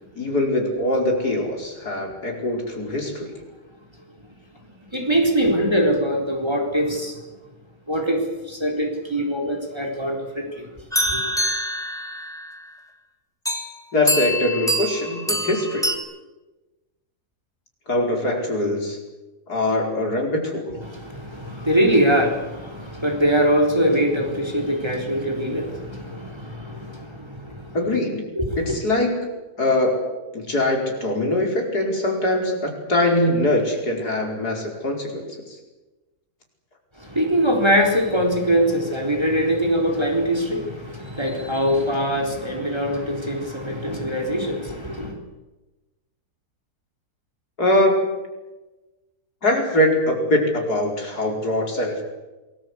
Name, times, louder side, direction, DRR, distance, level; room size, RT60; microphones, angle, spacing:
voice 1, 0.2-3.3 13.9-15.9 17.9-19.0 19.5-20.8 27.7-28.3 28.6-29.2 29.6-30.0 30.3-35.6 47.6-48.1 49.4-52.0, left 1 dB, 75° left, 1 dB, 5.6 m, -22 dB
voice 2, 4.9-7.2 7.9-10.7 11.1-11.2 20.9-27.8 28.4-28.8 37.0-45.2, equal, 15° right, 2 dB, 4.1 m, -22 dB
sound 1, 10.9-12.6 13.4-13.7 14.1-15.9, equal, ahead, 2.9 m, -25 dB
28.0 x 20.5 x 8.2 m, 1.1 s
omnidirectional pair, 1.7 m